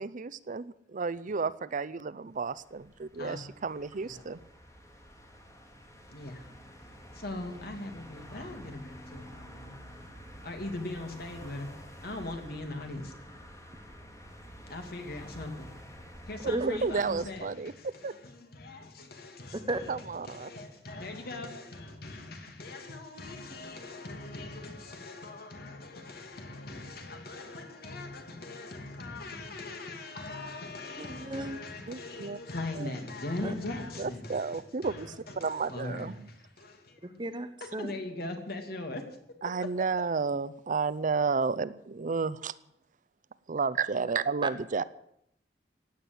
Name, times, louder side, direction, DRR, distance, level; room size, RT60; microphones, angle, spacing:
voice 1, 0.0-4.4 16.4-18.2 19.9-20.5 31.9-32.4 32.8-32.9 34.0-36.3 39.4-42.5 43.5-44.8, right 4 dB, 45° right, 16 dB, 0.5 m, -32 dB
sound 1, 2.3-17.3, equal, 20° left, 2.5 m, -49 dB
voice 2, 6.1-6.5 7.1-9.7 10.4-11.7 12.0-13.1 14.7-15.7 16.2-20.0 20.3-37.1 37.7-39.0, left 2 dB, 60° left, 5 dB, 2.7 m, -40 dB
voice 3, 16.5-16.8 19.7-19.8 31.0-31.8 33.4-33.5 37.0-37.9, right 1 dB, 25° right, 10 dB, 1.1 m, -34 dB
16.0 x 9.9 x 7.9 m, 0.76 s
head